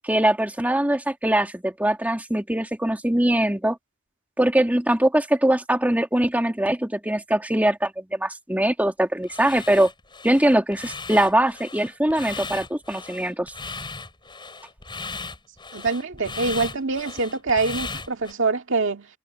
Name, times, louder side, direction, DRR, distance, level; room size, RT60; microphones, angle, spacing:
voice 1, 0.0-3.8 4.4-9.9 10.2-13.5, right 1 dB, 10° right, 2.0 m, -22 dB
sound 1, 9.2-18.3, left 4 dB, 25° left, 6.9 m, -37 dB
voice 2, 15.7-19.1, right 3 dB, 65° right, 2.1 m, -25 dB
head